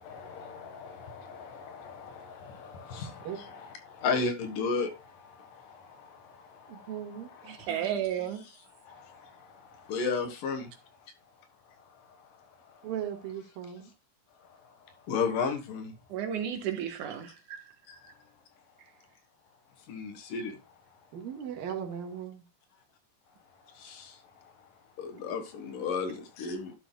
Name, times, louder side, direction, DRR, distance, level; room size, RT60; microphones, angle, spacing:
voice 1, 0.0-7.7 8.8-10.7 12.2-12.3 12.7-12.8 15.1-15.9 17.9-18.0 19.9-20.6 23.7-24.5 25.0-26.7, left 5 dB, 70° left, 2.9 m, -35 dB
voice 2, 6.7-7.6 12.8-13.9 21.1-22.4, right 9 dB, 85° right, 3.4 m, -38 dB
voice 3, 7.5-8.4 16.1-17.6, right 9 dB, 65° right, 2.6 m, -33 dB
12.0 x 7.5 x 2.2 m
omnidirectional pair, 4.0 m